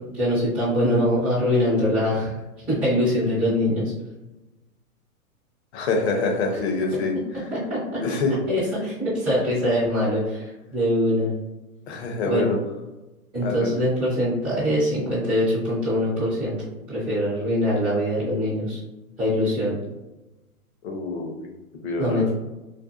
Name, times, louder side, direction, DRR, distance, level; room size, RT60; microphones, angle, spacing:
voice 1, 0.0-3.9 7.5-8.0 8.5-11.3 12.2-12.5 13.3-16.5 16.9-18.8 19.2-19.8 22.0-22.3, equal, 5° right, -12 dB, 0.3 m, -23 dB
voice 2, 5.7-7.1 8.0-8.4 11.9-12.6 13.4-13.8 20.8-21.5 21.8-22.3, left 3 dB, 50° left, 2 dB, 0.6 m, -25 dB
2.5 x 2.3 x 2.4 m, 1.0 s
hypercardioid pair, 125°, 44 cm